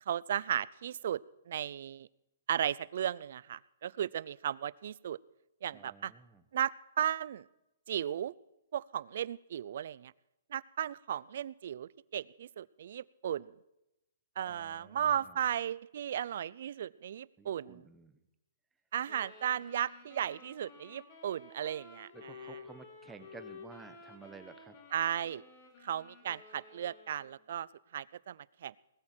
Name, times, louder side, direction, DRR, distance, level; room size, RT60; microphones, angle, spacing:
voice 1, 0.1-1.2 1.5-2.1 2.5-5.2 5.6-6.1 6.5-7.5 7.9-8.3 8.7-10.1 10.5-13.5 14.4-17.8 18.9-22.3 24.9-25.4 25.8-27.7 27.9-28.7, right 10 dB, 60° right, 21 dB, 0.5 m, -35 dB
voice 2, 5.7-6.4 14.4-15.4 17.4-18.2 22.1-24.7, right 5 dB, 10° right, 9 dB, 1.1 m, -53 dB
sound 1, 19.1-27.5, left 4 dB, 35° left, 3.9 m, -53 dB
20.0 x 13.5 x 4.5 m, 0.89 s
hypercardioid pair, 155°, 0 cm